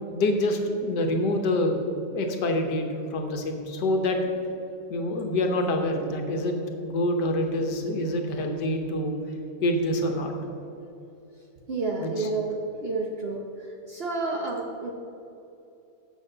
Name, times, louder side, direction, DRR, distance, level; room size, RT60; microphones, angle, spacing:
voice 1, 0.1-1.8 2.1-2.8 3.1-4.4 4.9-6.5 6.8-9.2 9.6-10.3 12.0-12.3, left 1 dB, 75° left, 4 dB, 1.6 m, -26 dB
voice 2, 11.7-13.4 13.9-14.9, right 3 dB, 45° right, 0 dB, 0.8 m, -30 dB
7.6 x 6.7 x 6.5 m, 2.8 s
omnidirectional pair, 1.9 m